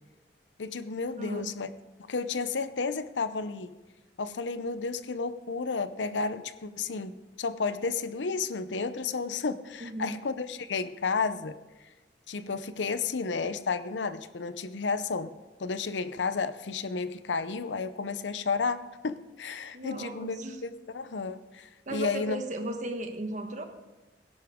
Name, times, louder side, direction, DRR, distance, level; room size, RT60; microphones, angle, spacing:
voice 1, 0.6-1.7 2.0-3.7 4.2-11.6 12.3-15.3 15.6-22.4, left 4 dB, 90° left, 13 dB, 0.7 m, -32 dB
voice 2, 1.1-1.6 9.8-10.1 19.7-20.6 21.9-23.7, right 1 dB, 45° right, 6 dB, 1.3 m, -36 dB
17.0 x 11.0 x 3.6 m, 1.1 s
head